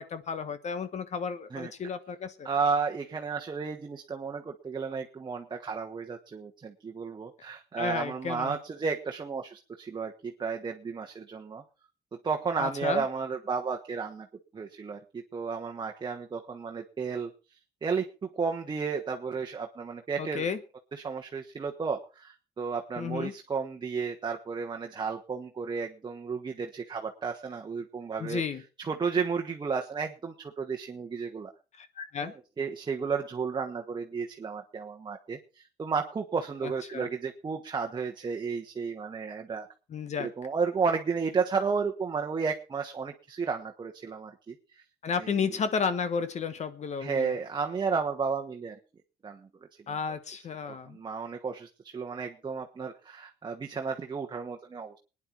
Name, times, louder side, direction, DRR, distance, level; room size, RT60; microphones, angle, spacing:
voice 1, 0.0-2.5 7.8-8.5 12.6-13.0 20.2-20.6 23.0-23.3 28.2-28.6 31.8-32.3 36.9-37.1 39.9-40.3 45.0-47.3 49.9-51.0, left 6 dB, 40° left, 12 dB, 1.2 m, -32 dB
voice 2, 2.4-11.6 12.2-14.3 14.5-17.3 17.8-20.5 20.9-28.4 28.8-31.5 32.2-39.7 40.2-44.6 45.2-45.4 47.0-48.8 49.2-49.5 50.6-55.0, right 5 dB, 25° right, 3 dB, 1.3 m, -33 dB
21.0 x 10.0 x 4.6 m, 0.35 s
cardioid pair, 110°, 17 cm